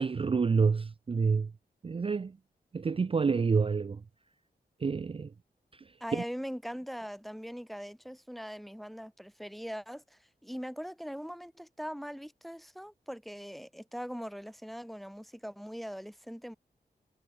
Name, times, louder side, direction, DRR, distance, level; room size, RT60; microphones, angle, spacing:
voice 1, 0.0-1.5 1.8-2.4 2.7-4.0 4.8-5.3 6.1-6.2, right 5 dB, 35° right, 0.4 m, -28 dB
voice 2, 6.0-16.6, equal, ahead, 0.8 m, -41 dB
cardioid pair, 60°, 17 cm